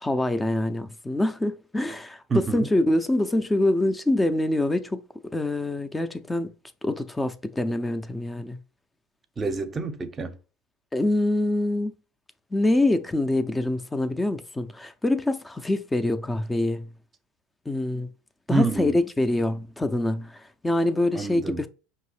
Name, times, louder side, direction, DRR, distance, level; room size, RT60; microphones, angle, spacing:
voice 1, 0.0-5.0 5.3-6.5 6.8-8.6 10.9-11.9 12.5-16.9 17.7-18.1 18.5-21.7, left 1 dB, 10° left, 0.5 m, -25 dB
voice 2, 2.3-2.7 9.4-10.4 18.5-19.0 21.1-21.6, right 3 dB, 25° right, 0.7 m, -27 dB
5.2 x 2.8 x 3.3 m
supercardioid pair, 100°, 0 cm